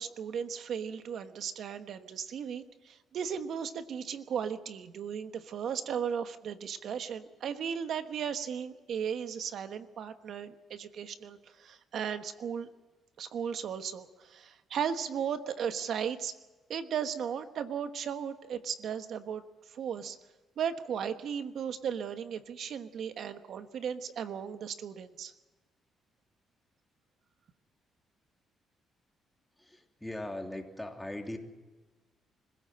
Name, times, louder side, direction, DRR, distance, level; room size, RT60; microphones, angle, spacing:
voice 1, 0.0-12.7 13.2-16.3 16.7-19.4 19.7-20.2 20.6-25.3, right 7 dB, 65° right, 9 dB, 1.2 m, -36 dB
voice 2, 29.6-31.4, left 1 dB, 5° left, 2 dB, 3.1 m, -40 dB
25.5 x 15.5 x 7.7 m, 1.2 s
cardioid pair, 90°, 0 cm